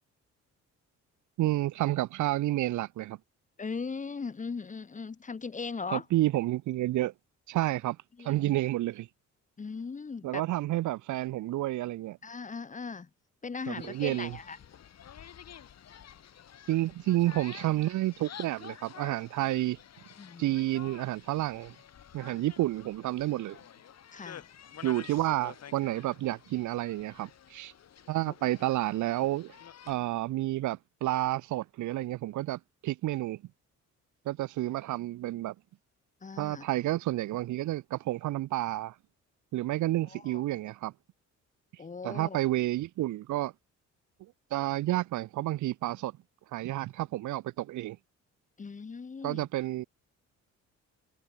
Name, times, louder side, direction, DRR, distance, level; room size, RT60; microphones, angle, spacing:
voice 1, 1.4-3.2 5.9-7.1 7.5-8.0 8.2-9.1 10.2-12.2 13.7-14.4 16.7-19.8 20.4-21.7 22.1-23.6 24.8-27.7 28.1-29.5 29.9-33.4 34.3-35.5 36.4-38.9 39.5-40.9 42.0-43.5 44.5-46.1 46.5-48.0 49.2-49.8, right 16 dB, 75° right, 0.8 m, -30 dB
voice 2, 3.6-6.0 8.2-8.5 9.6-10.4 12.2-13.1 13.4-14.6 20.2-20.5 24.1-24.5 28.2-28.3 36.2-36.7 40.1-40.4 41.8-42.4 48.6-49.4, left 5 dB, 25° left, 1.1 m, -38 dB
sound 1, 13.7-30.0, left 9 dB, 60° left, 3.4 m, -50 dB
cardioid pair, 90°, 30 cm